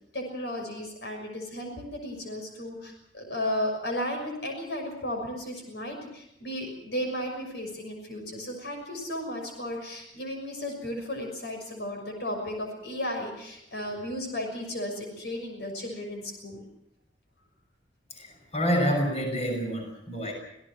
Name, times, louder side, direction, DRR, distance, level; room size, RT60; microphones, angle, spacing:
voice 1, 0.1-16.6, left 1 dB, 65° left, 3 dB, 6.3 m, -34 dB
voice 2, 18.1-20.3, equal, 35° left, 2 dB, 6.4 m, -28 dB
27.0 x 17.5 x 6.3 m, 0.78 s
head